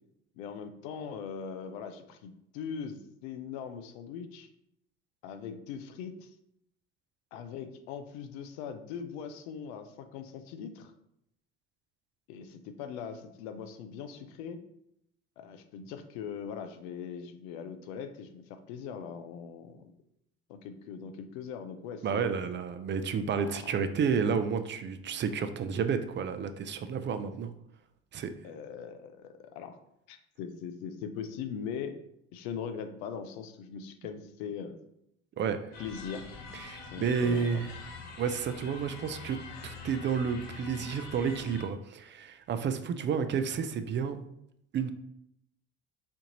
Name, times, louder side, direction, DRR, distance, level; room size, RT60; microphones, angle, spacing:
voice 1, 0.4-4.5 5.2-6.3 7.3-10.9 12.3-14.6 15.4-19.8 20.5-22.3 23.4-23.8 28.4-29.8 30.1-32.0 32.3-34.8 35.8-36.3 36.9-37.6, left 7 dB, 85° left, 8 dB, 0.5 m, -41 dB
voice 2, 22.0-27.5 28.1-28.3 35.4-35.6 36.5-37.7 38.2-39.4 39.6-44.2 44.7-44.9, right 6 dB, 40° right, 9 dB, 0.4 m, -31 dB
sound 1, 35.7-41.6, left 4 dB, 65° left, 0.9 m, -45 dB
4.4 x 2.5 x 2.9 m, 0.77 s
supercardioid pair, 70°, 31 cm